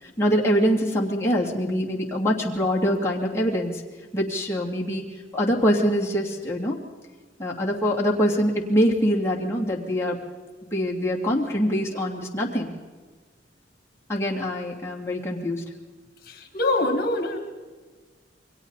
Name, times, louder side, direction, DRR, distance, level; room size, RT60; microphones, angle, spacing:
voice 1, 0.0-3.8 4.1-5.0 5.3-6.8 7.4-10.2 10.7-12.7 14.1-15.6, equal, 15° left, -3 dB, 2.8 m, -24 dB
voice 2, 16.3-17.4, left 2 dB, 55° left, 4 dB, 2.2 m, -24 dB
28.5 x 23.0 x 4.1 m, 1.4 s
head